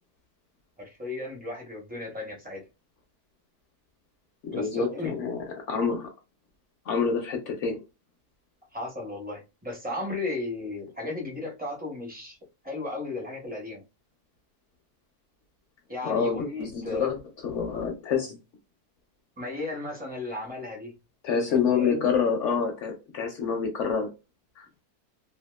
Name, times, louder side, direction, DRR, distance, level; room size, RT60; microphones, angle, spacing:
voice 1, 0.8-2.7 4.5-5.1 8.7-12.4 12.6-13.8 15.9-17.1 19.4-20.9 21.5-22.0, left 2 dB, 15° right, 0.3 m, -35 dB
voice 2, 4.4-6.1 6.9-7.8 16.0-18.3 21.2-24.1 24.6-24.7, left 6 dB, 70° left, 0.7 m, -27 dB
2.8 x 2.2 x 2.2 m
omnidirectional pair, 1.7 m